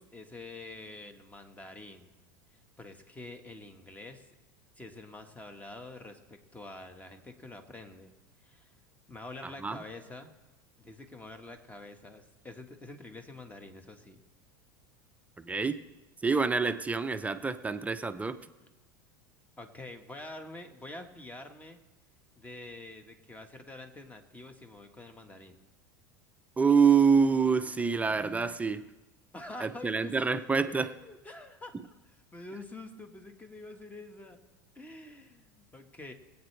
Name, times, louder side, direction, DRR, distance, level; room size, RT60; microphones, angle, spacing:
voice 1, 0.0-2.1 2.8-4.3 4.7-8.1 8.4-8.7 9.1-10.3 10.8-14.2 18.6-18.7 19.6-21.8 22.4-25.6 28.1-28.6 29.3-34.4 34.7-36.1, left 2 dB, 15° left, 6 dB, 1.6 m, -47 dB
voice 2, 15.4-15.8 16.2-18.4 26.6-28.8 29.6-30.9, right 5 dB, 15° right, 10 dB, 0.7 m, -26 dB
22.0 x 8.7 x 3.4 m, 1.1 s
hypercardioid pair, 85°, 11 cm